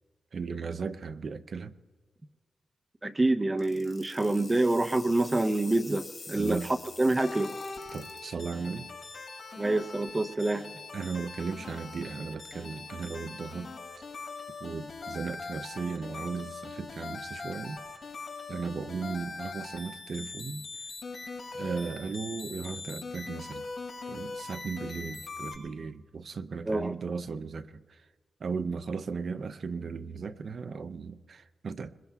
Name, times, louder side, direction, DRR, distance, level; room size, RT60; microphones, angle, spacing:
voice 1, 0.3-1.7 6.3-6.7 7.9-8.9 10.9-13.7 14.6-17.8 18.5-20.7 21.5-23.7 24.1-28.0 28.4-31.9, right 5 dB, 55° right, 0.5 m, -36 dB
voice 2, 3.0-6.6 7.0-7.5 9.6-10.7 26.7-26.9, right 2 dB, 20° right, 0.7 m, -26 dB
sound 1, 3.6-8.2, left 3 dB, 40° left, 3.7 m, -47 dB
sound 2, 7.2-25.6, left 4 dB, 55° left, 6.3 m, -41 dB
26.5 x 22.0 x 2.4 m
wide cardioid pair, 105°, 0 cm